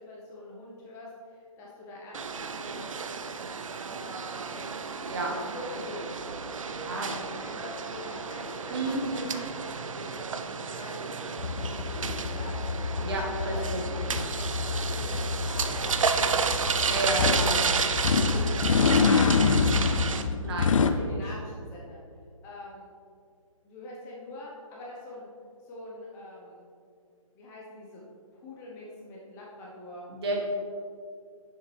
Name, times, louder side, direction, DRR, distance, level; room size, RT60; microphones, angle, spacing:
voice 1, 0.0-2.9 3.9-6.3 6.7-11.2 11.5-12.6 13.4-16.5 16.9-17.1 17.8-20.4 20.7-22.0 22.4-22.9 23.6-25.3 25.6-26.7 27.3-28.0 28.3-30.1, left 1 dB, 15° left, -4 dB, 0.7 m, -44 dB
sound 1, 2.1-20.2, right 5 dB, 70° right, 0.5 m, -32 dB
voice 2, 6.7-7.1 8.7-9.2 13.0-13.8 16.8-17.6 20.4-21.0 30.1-30.4, right 2 dB, 50° right, -1 dB, 1.4 m, -31 dB
sound 2, 11.4-20.9, left 5 dB, 70° left, 0.5 m, -27 dB
6.6 x 6.4 x 3.2 m, 2.3 s
figure-of-eight pair, 145°, 18 cm